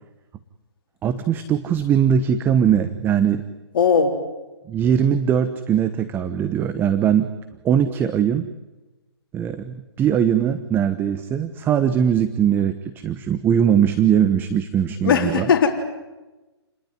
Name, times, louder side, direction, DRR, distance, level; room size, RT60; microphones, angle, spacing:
voice 1, 1.0-3.4 4.7-7.3 7.6-8.5 9.3-15.5, right 8 dB, 15° right, 11 dB, 1.0 m, -20 dB
voice 2, 3.7-4.2 15.0-15.7, left 6 dB, 50° left, 2 dB, 4.0 m, -18 dB
29.5 x 20.5 x 9.5 m, 1.1 s
hypercardioid pair, 140°, 14 cm